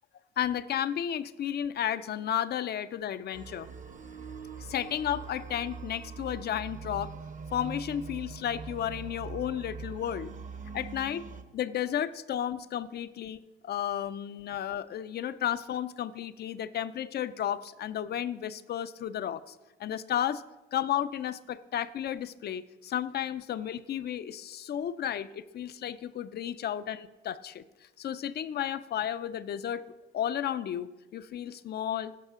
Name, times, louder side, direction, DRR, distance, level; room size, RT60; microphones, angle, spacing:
voice 1, 0.4-3.7 4.6-7.1 7.5-10.3 10.7-11.3 11.5-19.5 19.8-20.4 20.7-27.6 28.0-29.8 30.1-32.2, left 10 dB, 55° left, 14 dB, 0.5 m, -33 dB
sound 1, 3.3-11.4, right 5 dB, 40° right, 0.8 m, -42 dB
15.5 x 5.5 x 3.6 m, 1.1 s
cardioid pair, 90°, 20 cm